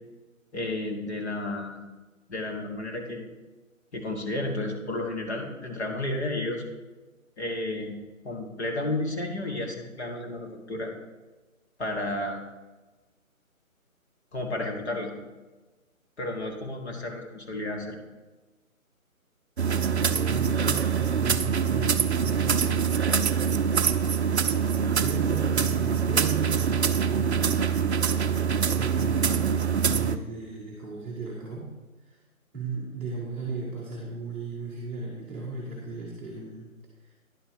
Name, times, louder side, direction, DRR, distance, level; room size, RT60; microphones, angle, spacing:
voice 1, 0.5-1.8 2.3-3.3 3.9-6.6 7.4-8.0 8.2-10.9 11.8-12.4 14.3-15.1 16.2-18.0, left 2 dB, 50° left, 2 dB, 1.6 m, -32 dB
sound 1, 19.6-30.2, right 7 dB, 50° right, 0.5 m, -24 dB
voice 2, 20.1-22.9 25.0-27.6 28.7-29.6 29.8-31.7 32.0-32.2 32.5-36.7 37.1-37.2, right 3 dB, 10° right, -9 dB, 0.8 m, -36 dB
10.0 x 4.3 x 6.2 m, 1.2 s
figure-of-eight pair, 150°, 43 cm